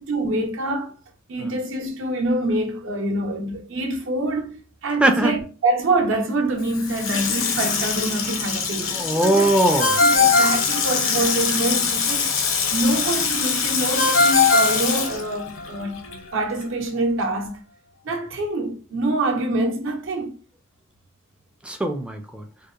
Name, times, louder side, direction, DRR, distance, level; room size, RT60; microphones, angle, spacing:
voice 1, 0.1-0.9 1.3-8.9 9.2-9.5 10.0-12.3 12.7-16.0 16.3-17.6 18.0-20.4, right 2 dB, 65° right, 0.7 m, -25 dB
voice 2, 5.0-5.4 8.9-10.0 21.6-22.4, right 1 dB, 5° right, 0.3 m, -20 dB
Water tap faucet / Sink (filling or washing), 6.6-16.3 16.6-16.7, left 6 dB, 70° left, 0.6 m, -25 dB
Ringtone, 9.8-11.5 14.0-15.6, left 3 dB, 85° left, 1.0 m, -19 dB
2.7 x 2.1 x 2.3 m
head